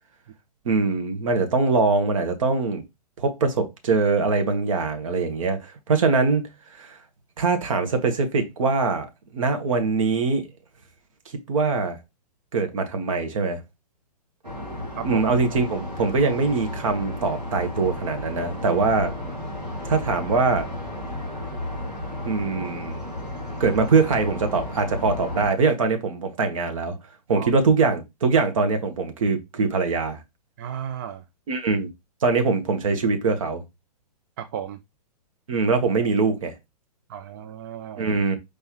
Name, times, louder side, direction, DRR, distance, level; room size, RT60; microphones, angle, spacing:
voice 1, 0.6-2.8 3.2-7.0 7.4-9.1 9.3-10.5 11.5-12.0 12.5-13.6 15.0-19.1 19.8-20.7 22.2-23.0 23.6-26.9 27.3-30.2 31.5-31.9 32.2-33.6 35.5-36.5 38.0-38.4, right 4 dB, 55° right, 1.2 m, -23 dB
sound 1, 14.4-25.5, left 1 dB, 85° right, 1.9 m, -33 dB
voice 2, 30.6-31.2 34.4-34.8 37.1-38.1, right 9 dB, 30° right, 0.3 m, -34 dB
4.9 x 3.4 x 2.9 m
figure-of-eight pair, 115°, 21 cm